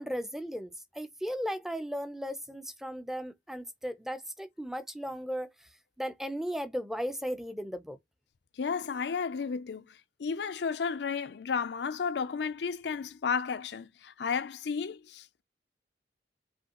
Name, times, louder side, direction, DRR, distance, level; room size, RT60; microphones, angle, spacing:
voice 1, 0.0-5.5 6.0-8.0, equal, ahead, 0.5 m, -36 dB
voice 2, 8.6-9.9 10.2-15.4, left 5 dB, 70° left, 0.4 m, -33 dB
5.0 x 2.7 x 2.9 m
head